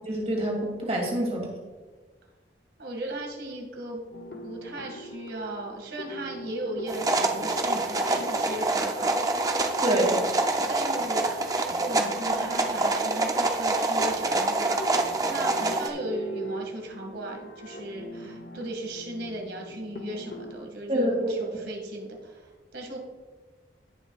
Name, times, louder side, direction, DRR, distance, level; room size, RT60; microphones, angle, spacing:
voice 1, 0.1-1.5 9.8-10.0 20.9-21.5, right 1 dB, 35° right, -1 dB, 2.6 m, -26 dB
voice 2, 2.8-4.0 4.4-10.3 10.7-23.0, right 1 dB, 70° right, 1 dB, 2.1 m, -37 dB
sound 1, 4.1-20.5, equal, 75° left, 0.9 m, -41 dB
sound 2, 6.9-15.9, right 2 dB, 20° right, 0.5 m, -26 dB
17.5 x 6.0 x 2.4 m, 1.4 s
head